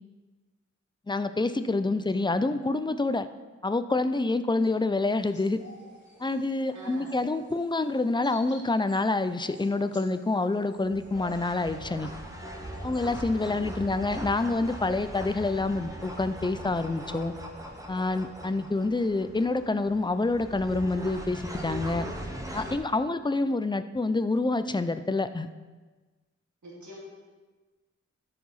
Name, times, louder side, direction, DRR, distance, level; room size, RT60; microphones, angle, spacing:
voice 1, 1.1-3.3 3.6-5.6 6.2-12.1 12.8-17.3 17.9-22.1 22.5-25.5, left 2 dB, 15° left, 11 dB, 0.4 m, -27 dB
sound 1, 5.0-14.2, equal, 40° left, 2.3 m, -50 dB
voice 2, 6.7-7.1 13.4-13.9 26.6-27.0, right 1 dB, 75° right, -5 dB, 2.6 m, -47 dB
sound 2, 10.8-22.8, right 1 dB, 10° right, 1.2 m, -40 dB
13.0 x 4.8 x 4.1 m, 1.3 s
wide cardioid pair, 75°, 29 cm